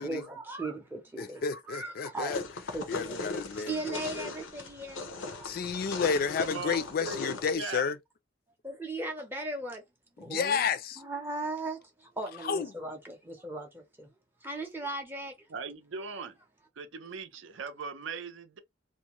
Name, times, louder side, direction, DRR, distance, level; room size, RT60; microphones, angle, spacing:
voice 1, 0.0-2.4 2.7-3.1 3.5-5.5 8.6-9.8 10.2-10.6 11.0-14.1 14.4-15.3, right 2 dB, 10° right, 0.5 m, -38 dB
voice 2, 1.2-2.4 2.9-4.3 5.4-8.0 10.2-11.0 12.4-12.7, left 6 dB, 50° left, 0.3 m, -31 dB
sound 1, 2.3-7.5, left 3 dB, 85° left, 0.6 m, -39 dB
voice 3, 6.1-7.8 15.5-16.4 16.8-18.6, right 5 dB, 85° right, 0.6 m, -40 dB
2.5 x 2.1 x 2.9 m
head